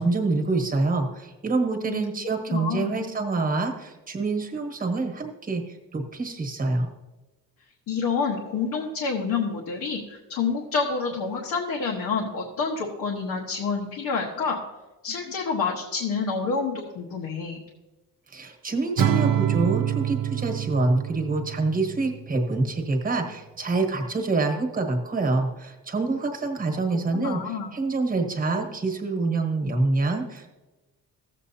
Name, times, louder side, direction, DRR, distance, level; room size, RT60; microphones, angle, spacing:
voice 1, 0.0-6.9 18.3-30.5, right 3 dB, 25° right, 3 dB, 1.3 m, -26 dB
voice 2, 2.5-3.1 7.9-14.6 15.0-17.6 27.1-27.7, left 5 dB, 75° left, -2 dB, 1.2 m, -28 dB
Acoustic guitar / Strum, 19.0-22.3, right 9 dB, 70° right, 0.7 m, -26 dB
14.5 x 7.4 x 2.8 m, 1.1 s
cardioid pair, 155°, 35 cm